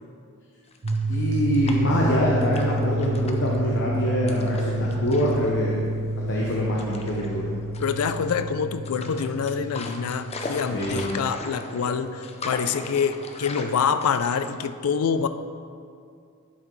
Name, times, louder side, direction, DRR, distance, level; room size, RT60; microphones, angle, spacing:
sound 1, 0.7-2.0 2.4-3.6 4.3-5.5 5.7-5.9 6.8-7.3 7.7-8.4 8.8-14.7, left 2 dB, 30° left, 0.5 m, -38 dB
sound 2, 0.8-12.7, right 1 dB, 70° right, 0.9 m, -30 dB
voice 1, 1.1-5.8 6.3-7.5 10.7-11.0, equal, 55° left, -4 dB, 0.9 m, -24 dB
voice 2, 7.8-15.3, left 6 dB, 85° left, 11 dB, 0.4 m, -26 dB
11.0 x 5.7 x 3.2 m, 2.3 s
head